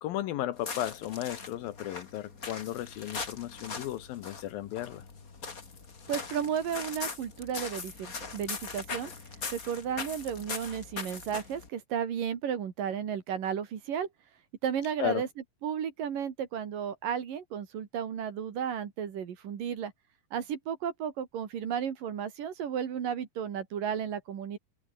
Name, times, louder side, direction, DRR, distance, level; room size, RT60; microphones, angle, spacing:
voice 1, 0.0-5.0 15.0-15.2, left 13 dB, 70° left, 2.6 m, -35 dB
sound 1, 0.5-11.7, left 4 dB, 25° left, 2.2 m, -41 dB
voice 2, 6.1-9.1 9.5-14.1 14.6-15.3 15.6-19.9 20.3-24.6, right 8 dB, 60° right, 3.8 m, -33 dB
omnidirectional pair, 4.6 m